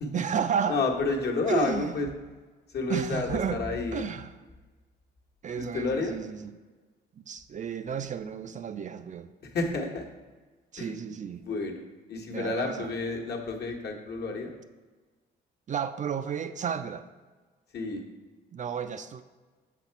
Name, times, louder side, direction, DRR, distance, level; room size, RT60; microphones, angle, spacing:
voice 1, 0.1-0.8 1.5-1.9 2.9-3.6 3.9-4.3 5.4-6.5 7.2-9.3 10.7-11.4 12.3-12.9 15.7-17.1 18.5-19.2, right 7 dB, 40° right, 10 dB, 0.4 m, -32 dB
voice 2, 0.7-2.1 2.7-4.0 5.6-6.1 9.5-10.0 10.8-10.9 11.4-11.8 12.1-14.5 17.7-18.0, left 3 dB, 55° left, 0 dB, 1.1 m, -30 dB
6.5 x 4.2 x 4.5 m, 1.3 s
cardioid pair, 90°, 20 cm